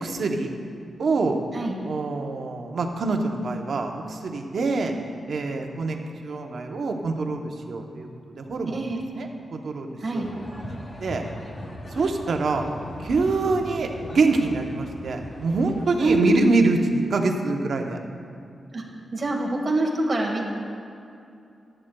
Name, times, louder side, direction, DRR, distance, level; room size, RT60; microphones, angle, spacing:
voice 1, 0.0-0.5 1.0-1.4 1.9-4.9 5.3-8.1 8.4-8.8 9.1-10.2 10.6-11.2 11.9-12.7 13.0-18.0, right 3 dB, 55° right, 4 dB, 0.8 m, -25 dB
voice 2, 8.7-9.0 10.0-10.3 16.0-16.4 18.7-18.8 19.1-20.5, right 2 dB, 30° right, -2 dB, 1.3 m, -24 dB
sound 1, 10.2-16.5, left 1 dB, 35° left, 1.0 m, -39 dB
14.0 x 9.9 x 2.3 m, 2.6 s
wide cardioid pair, 160°, 0 cm